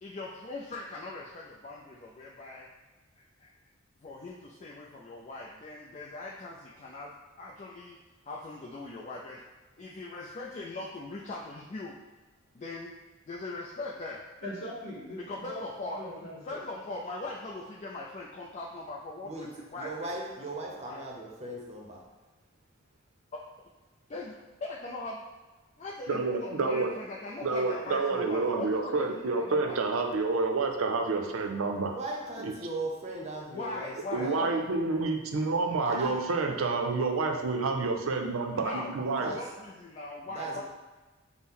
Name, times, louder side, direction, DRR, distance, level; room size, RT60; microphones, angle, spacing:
voice 1, 0.0-2.7 3.2-3.5 4.0-4.3 4.6-8.0 8.2-9.4 9.8-12.0 12.5-12.9 13.3-14.2 15.2-16.0 16.4-20.5 20.8-21.0 24.1-25.2 25.8-29.8 33.5-35.0 38.6-40.6, left 2 dB, 35° left, -3 dB, 0.4 m, -40 dB
voice 2, 14.4-16.8, equal, 55° left, -6 dB, 1.1 m, -41 dB
voice 3, 19.2-22.1 31.9-34.4 35.8-36.3 39.2-39.5 40.3-40.6, right 2 dB, 35° right, 0 dB, 0.7 m, -38 dB
voice 4, 26.1-26.9 27.4-31.9 32.4-32.5 34.1-39.3, right 3 dB, 80° right, 4 dB, 0.5 m, -29 dB
6.0 x 2.1 x 3.6 m, 1.3 s
head